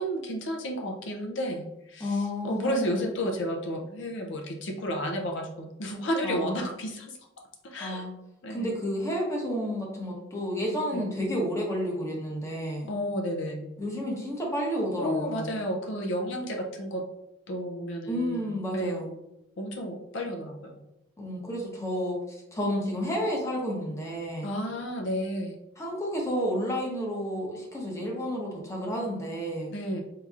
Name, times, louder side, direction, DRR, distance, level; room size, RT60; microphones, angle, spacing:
voice 1, 0.0-7.2 7.6-8.0 8.4-8.7 10.9-11.1 12.9-13.7 15.0-17.1 17.5-19.1 19.6-20.7 24.4-25.6 29.7-30.0, equal, 65° left, 2 dB, 0.5 m, -32 dB
voice 2, 2.0-3.0 6.2-6.6 7.8-8.1 8.5-12.9 13.8-15.6 18.1-19.1 21.2-24.5 25.8-29.8, equal, 15° left, -2 dB, 0.8 m, -31 dB
4.6 x 2.8 x 2.4 m, 0.88 s
head